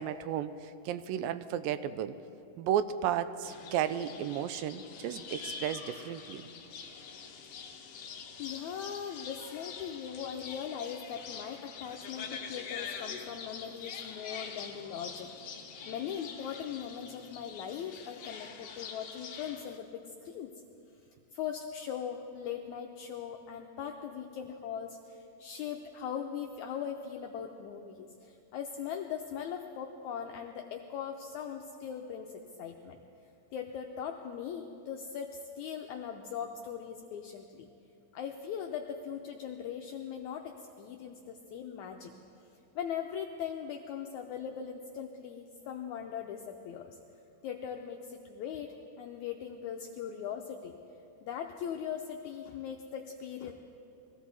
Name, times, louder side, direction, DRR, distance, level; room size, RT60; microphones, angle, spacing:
voice 1, 0.0-2.1 2.6-6.5, right 10 dB, 85° right, 12 dB, 2.3 m, -33 dB
sound 1, 3.4-19.8, left 6 dB, 75° left, 1.3 m, -45 dB
voice 2, 8.4-15.3 15.8-20.5 21.3-33.0 33.5-37.7 38.1-42.1 42.7-47.0 47.4-50.8 51.2-53.5, left 8 dB, 90° left, 3 dB, 1.7 m, -40 dB
22.0 x 15.5 x 4.1 m, 2.7 s
omnidirectional pair, 4.1 m